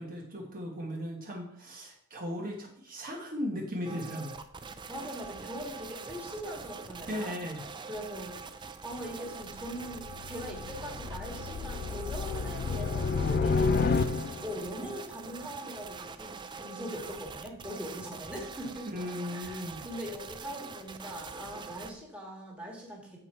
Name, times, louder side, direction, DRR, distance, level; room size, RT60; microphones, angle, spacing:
voice 1, 0.0-4.4 7.1-7.6 18.9-19.8, equal, 40° right, -1 dB, 1.2 m, -37 dB
sound 1, 3.8-21.9, right 5 dB, 20° right, 0.4 m, -44 dB
voice 2, 4.9-7.3 7.9-18.9 19.3-23.2, equal, 5° right, -3 dB, 1.7 m, -41 dB
sound 2, 9.4-14.6, left 4 dB, 45° left, 0.4 m, -30 dB
7.7 x 4.6 x 4.4 m, 0.69 s
head